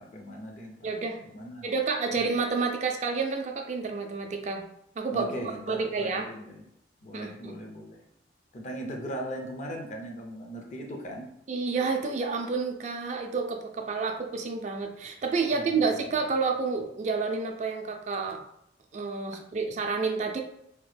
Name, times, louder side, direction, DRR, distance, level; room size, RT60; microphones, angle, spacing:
voice 1, 0.0-0.9 1.2-1.7 2.1-2.4 5.1-6.6 7.0-8.0 8.5-11.3 15.5-16.0, right 1 dB, 40° left, 1 dB, 0.5 m, -39 dB
voice 2, 0.8-1.2 1.6-4.6 5.0-6.2 7.1-7.5 11.5-18.4 18.9-20.4, right 4 dB, 40° right, 3 dB, 0.3 m, -29 dB
2.8 x 2.1 x 3.2 m, 0.76 s
head